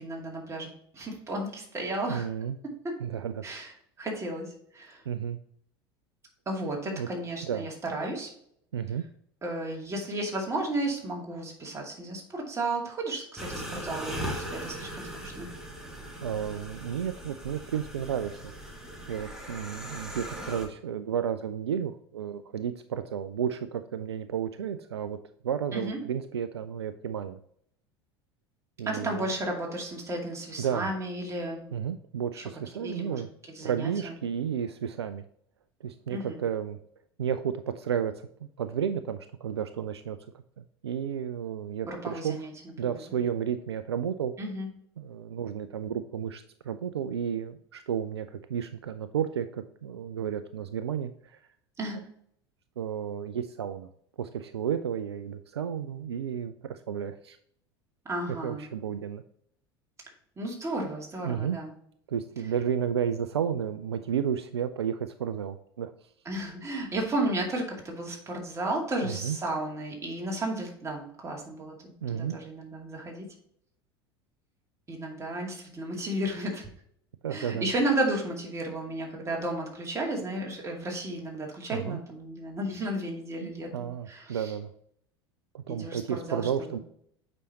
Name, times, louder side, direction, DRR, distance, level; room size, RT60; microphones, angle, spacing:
voice 1, 0.0-2.3 2.8-3.0 3.4-3.7 4.0-5.0 6.5-8.3 9.4-15.5 25.7-26.0 28.8-31.6 32.4-32.5 32.7-33.2 33.5-34.2 36.1-36.4 41.8-43.0 44.4-44.7 51.8-52.0 58.0-58.7 60.4-61.7 66.3-73.3 74.9-76.7 77.3-83.7 84.1-84.5 85.7-86.8, right 1 dB, 20° right, 0 dB, 2.3 m, -33 dB
voice 2, 2.1-2.6 3.0-3.4 5.1-5.4 6.9-7.1 7.4-7.7 8.7-9.1 15.8-16.0 16.2-18.5 19.1-25.2 25.4-27.4 28.8-29.3 30.6-30.9 31.7-33.3 33.6-35.2 35.8-36.8 37.2-40.2 40.6-42.4 42.8-44.3 45.0-51.4 52.8-53.9 54.2-57.4 58.4-59.2 61.2-61.6 62.1-65.9 69.0-69.4 72.0-72.4 77.2-77.7 81.7-82.0 83.4-84.7 85.5-86.8, right 8 dB, 75° right, 11 dB, 0.4 m, -32 dB
sound 1, 13.4-20.7, right 1 dB, 5° right, 1.8 m, -39 dB
8.2 x 5.3 x 2.9 m, 0.66 s
figure-of-eight pair, 75°, 14 cm